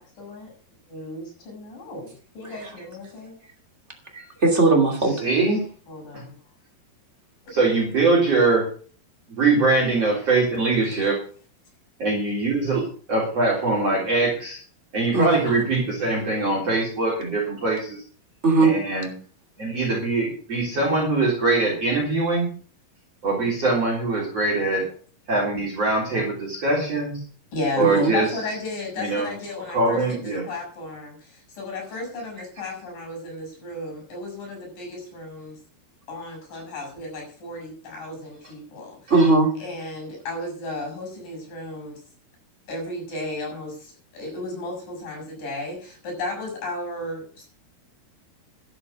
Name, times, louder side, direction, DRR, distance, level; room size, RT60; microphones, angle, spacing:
voice 1, 0.0-0.5 0.9-3.3 5.5-5.6 5.9-6.3 27.5-30.0 30.5-35.6 36.1-39.1 39.6-42.0 42.7-47.4, left 2 dB, 60° left, 2 dB, 7.7 m, -34 dB
voice 2, 2.4-2.8 4.1-5.1 15.1-15.4 18.4-18.7 27.8-28.1 39.1-39.5, right 3 dB, 20° right, 2 dB, 2.3 m, -19 dB
voice 3, 5.2-5.6 7.5-8.7 9.4-11.2 12.0-12.8 13.1-14.6 14.9-18.0 18.6-19.1 19.6-22.5 23.2-24.8 25.3-27.2 27.8-28.3 29.0-29.3 29.7-30.4, right 3 dB, 40° right, -3 dB, 4.6 m, -22 dB
12.5 x 7.7 x 6.5 m, 0.42 s
omnidirectional pair, 4.6 m